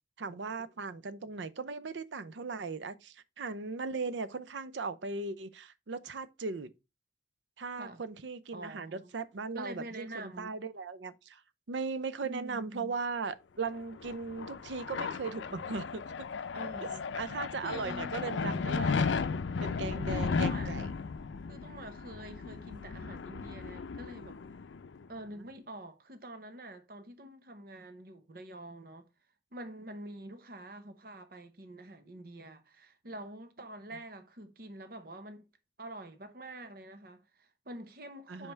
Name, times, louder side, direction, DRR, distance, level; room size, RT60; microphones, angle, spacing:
voice 1, 0.2-6.7 7.6-11.4 11.7-16.0 16.8-16.9 17.1-19.2 19.6-20.9 38.3-38.5, right 4 dB, 80° right, 0.6 m, -38 dB
voice 2, 8.5-9.1 9.5-10.6 12.2-12.9 16.5-17.0 17.6-18.2 20.1-20.8 21.5-24.4 25.1-29.1 29.5-35.5 35.8-38.5, right 1 dB, 55° right, 1.0 m, -46 dB
sound 1, 13.8-25.0, left 5 dB, 85° left, 0.5 m, -35 dB
5.4 x 4.7 x 4.5 m
head